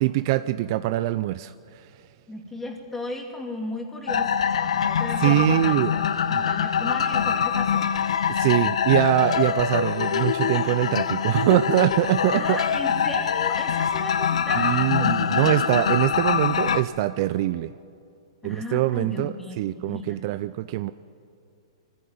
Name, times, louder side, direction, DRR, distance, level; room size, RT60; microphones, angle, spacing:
voice 1, 0.0-1.5 5.2-5.9 6.3-6.4 8.3-12.6 14.6-17.7 18.4-20.9, right 16 dB, 40° right, 13 dB, 0.5 m, -23 dB
voice 2, 2.3-8.0 12.3-15.4 18.4-20.3, left 1 dB, 5° left, 1 dB, 2.5 m, -35 dB
sound 1, 4.1-16.8, left 7 dB, 85° left, 1.0 m, -24 dB
22.5 x 15.0 x 9.6 m, 2.5 s
hypercardioid pair, 155°, 3 cm